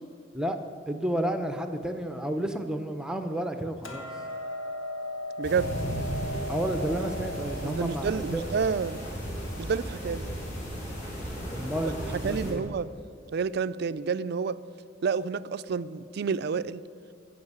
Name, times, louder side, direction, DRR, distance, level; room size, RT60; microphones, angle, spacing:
voice 1, 0.9-4.1 6.5-8.4 11.5-12.6, right 1 dB, 5° right, 7 dB, 0.6 m, -31 dB
Hammer, 3.8-10.1, equal, 90° left, 1.7 m, -38 dB
sound 1, 5.4-12.5, equal, 40° left, 3.7 m, -35 dB
voice 2, 5.4-5.7 7.6-9.0 9.6-10.3 12.2-12.9 13.3-14.6 15.0-16.8, right 5 dB, 55° right, 15 dB, 0.4 m, -29 dB
15.0 x 5.4 x 8.1 m, 2.4 s
head